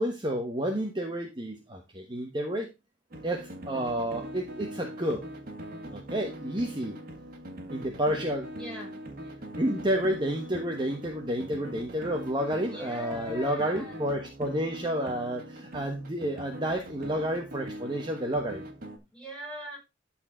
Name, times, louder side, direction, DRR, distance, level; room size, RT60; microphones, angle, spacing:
voice 1, 0.0-2.7 3.2-5.3 5.9-7.0 7.7-8.5 9.6-18.7, equal, 25° right, 2 dB, 1.2 m, -30 dB
sound 1, 3.1-19.0, equal, 50° right, 1.7 m, -42 dB
voice 2, 8.5-8.9 12.7-14.0 19.1-19.8, left 1 dB, 5° left, -4 dB, 5.1 m, -41 dB
13.0 x 4.4 x 3.8 m, 0.24 s
head